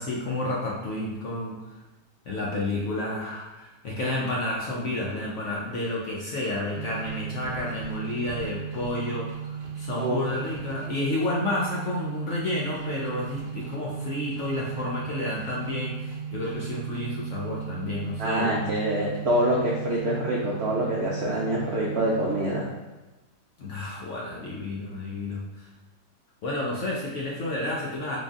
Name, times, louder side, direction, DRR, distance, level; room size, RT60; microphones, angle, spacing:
voice 1, 0.0-1.5 2.3-18.7 23.6-25.7 26.4-28.2, left 2 dB, 65° left, -4 dB, 0.8 m, -30 dB
sound 1, 6.8-22.9, right 7 dB, 70° right, 1.2 m, -36 dB
voice 2, 18.2-22.7, right 1 dB, 90° right, -3 dB, 0.5 m, -26 dB
4.0 x 3.3 x 2.4 m, 1.1 s
omnidirectional pair, 1.8 m